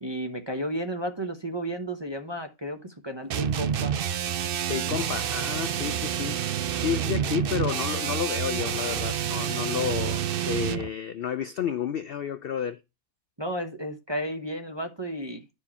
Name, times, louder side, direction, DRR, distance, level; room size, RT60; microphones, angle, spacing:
voice 1, 0.0-3.9 13.4-15.4, right 1 dB, 25° right, 0.6 m, -33 dB
sound 1, 3.3-10.9, right 9 dB, 75° right, 0.5 m, -28 dB
voice 2, 4.7-12.8, left 9 dB, 80° left, 0.5 m, -31 dB
11.0 x 4.6 x 4.2 m
omnidirectional pair, 1.6 m